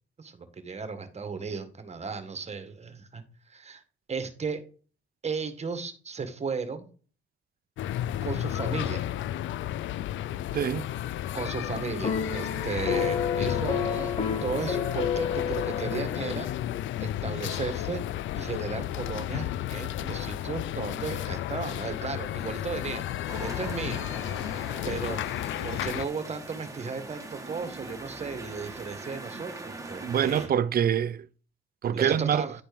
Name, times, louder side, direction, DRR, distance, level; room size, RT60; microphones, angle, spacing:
voice 1, 0.2-3.8 4.1-4.6 5.2-6.9 8.2-9.1 11.3-14.1 14.4-16.5 17.0-18.0 18.4-24.0 24.8-25.2 25.6-30.5 31.9-32.5, right 5 dB, 35° right, 1.7 m, -35 dB
sound 1, 7.8-26.1, left 12 dB, 75° left, 0.5 m, -32 dB
voice 2, 10.5-10.9 30.0-31.3 31.8-32.5, right 9 dB, 50° right, 0.6 m, -25 dB
sound 2, 12.0-16.5, left 6 dB, 30° left, 1.0 m, -30 dB
sound 3, 23.3-30.5, right 2 dB, 15° right, 1.8 m, -42 dB
10.5 x 4.3 x 5.3 m
cardioid pair, 90°, 20 cm